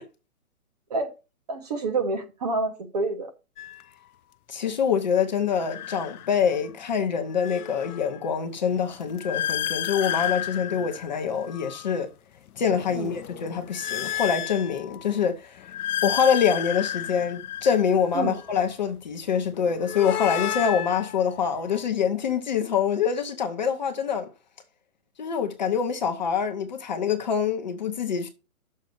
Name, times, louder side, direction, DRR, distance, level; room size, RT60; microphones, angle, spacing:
voice 1, 1.5-3.3 12.9-13.1 18.1-18.3, right 3 dB, 30° right, 1.0 m, -28 dB
sound 1, 3.6-3.8 5.5-6.7 7.1-12.0 12.5-15.1 15.6-18.5 19.5-21.8, left 11 dB, 80° left, 0.6 m, -32 dB
voice 2, 4.5-12.1 12.6-15.7 16.0-24.3 25.2-28.3, left 7 dB, 30° left, 0.8 m, -25 dB
6.5 x 5.8 x 6.8 m
hypercardioid pair, 170°, 44 cm